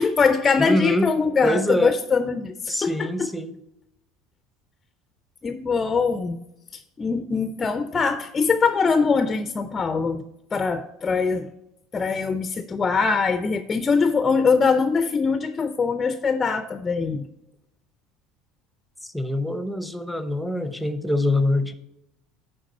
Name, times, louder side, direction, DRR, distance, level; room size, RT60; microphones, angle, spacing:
voice 1, 0.0-3.3 5.4-6.4 6.7-10.2 10.5-11.5 11.9-17.3, left 5 dB, 25° left, 10 dB, 0.5 m, -22 dB
voice 2, 0.6-1.1 1.4-2.0 2.7-3.6 19.0-21.7, left 1 dB, ahead, 10 dB, 0.8 m, -24 dB
9.8 x 3.6 x 6.8 m, 0.84 s
hypercardioid pair, 70°, 0 cm